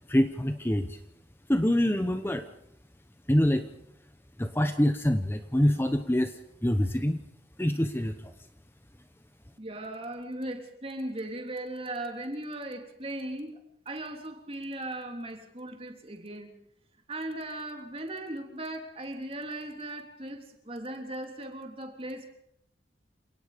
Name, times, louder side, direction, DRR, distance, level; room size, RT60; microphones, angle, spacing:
voice 1, 0.1-1.0 1.5-2.5 3.3-3.7 4.4-7.2 7.6-8.3, left 1 dB, 15° left, 8 dB, 0.9 m, -25 dB
voice 2, 9.6-13.6 13.9-16.5 17.1-22.3, right 1 dB, 30° right, 4 dB, 3.4 m, -38 dB
28.5 x 18.5 x 5.2 m, 0.79 s
head